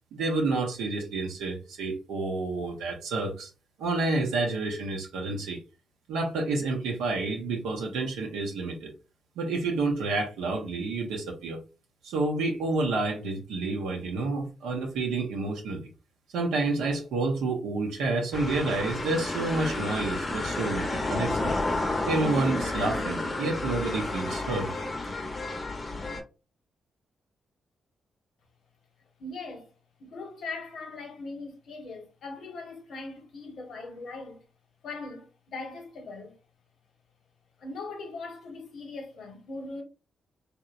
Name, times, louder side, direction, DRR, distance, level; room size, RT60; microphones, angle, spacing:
voice 1, 0.1-3.5 3.8-5.6 6.1-8.9 9.4-11.6 12.0-15.9 16.3-21.5 22.0-24.7, right 3 dB, 90° right, 0.5 m, -29 dB
sound 1, 18.3-26.2, left 2 dB, 35° left, 0.6 m, -31 dB
voice 2, 29.2-29.7 30.0-34.4 34.8-36.4 37.6-39.8, left 3 dB, 75° left, 0.9 m, -40 dB
2.8 x 2.0 x 2.3 m
supercardioid pair, 55°, 0 cm